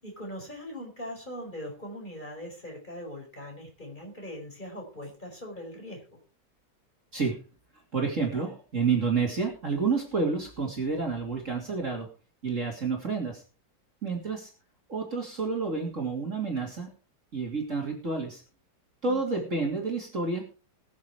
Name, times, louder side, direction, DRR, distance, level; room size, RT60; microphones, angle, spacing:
voice 1, 0.0-6.2 19.0-19.6, equal, 20° left, 0 dB, 5.4 m, -41 dB
voice 2, 7.9-12.1 12.4-13.4 14.0-14.5 14.9-16.9 17.3-18.4 19.0-20.4, right 4 dB, 40° right, 0 dB, 3.0 m, -29 dB
20.5 x 7.5 x 4.7 m, 0.35 s
omnidirectional pair, 2.2 m